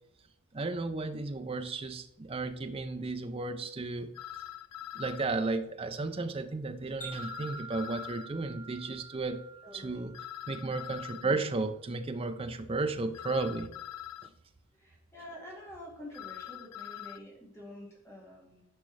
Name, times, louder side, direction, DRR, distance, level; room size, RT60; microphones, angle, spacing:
voice 1, 0.5-4.1 4.9-9.4 9.7-10.1 10.5-13.7, right 3 dB, 25° right, 9 dB, 0.4 m, -34 dB
sound 1, 4.1-5.3 7.1-8.3 10.1-11.3 13.1-14.3 16.1-17.2, left 12 dB, 85° left, 0.3 m, -43 dB
Wind chime, 7.0-11.3, right 5 dB, 35° left, 2.0 m, -48 dB
voice 2, 9.6-10.0 14.7-18.7, left 1 dB, 10° left, -4 dB, 1.9 m, -48 dB
9.7 x 5.2 x 3.3 m, 0.84 s
head